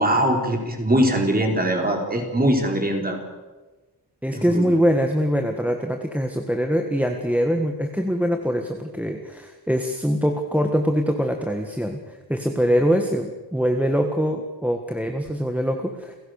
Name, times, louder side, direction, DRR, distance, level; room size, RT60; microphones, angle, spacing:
voice 1, 0.0-3.2 4.3-4.8, right 1 dB, 20° right, 2 dB, 4.6 m, -22 dB
voice 2, 4.2-16.2, equal, 5° right, 4 dB, 1.7 m, -23 dB
30.0 x 16.0 x 6.7 m, 1.2 s
wide cardioid pair, 115°, 42 cm